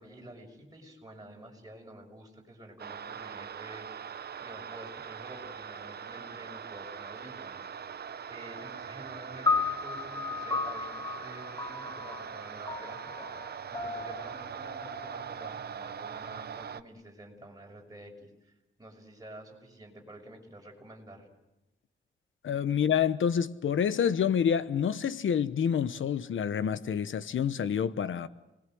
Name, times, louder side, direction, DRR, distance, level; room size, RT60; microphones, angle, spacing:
voice 1, 0.0-7.8 8.3-18.5 18.8-21.3, right 1 dB, 20° right, 6.3 m, -49 dB
sound 1, 2.8-16.8, right 7 dB, 55° right, 0.8 m, -42 dB
sound 2, 9.5-15.9, left 4 dB, 20° left, 1.5 m, -34 dB
voice 2, 22.4-28.3, left 8 dB, 90° left, 1.0 m, -28 dB
30.0 x 21.0 x 7.8 m
wide cardioid pair, 150°, 20 cm